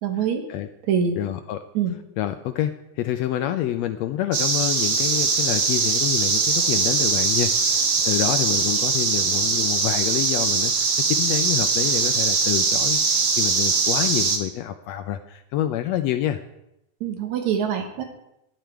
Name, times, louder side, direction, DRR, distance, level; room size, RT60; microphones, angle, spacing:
voice 1, 0.0-0.4 0.9-1.2 1.7-1.9 17.0-18.0, right 7 dB, 70° right, 5 dB, 2.6 m, -24 dB
voice 2, 1.2-1.6 2.2-16.4, left 12 dB, 80° left, 9 dB, 1.6 m, -27 dB
sound 1, 4.3-14.4, right 4 dB, 50° right, 1.6 m, -21 dB
12.0 x 10.0 x 4.6 m, 0.84 s
omnidirectional pair, 3.4 m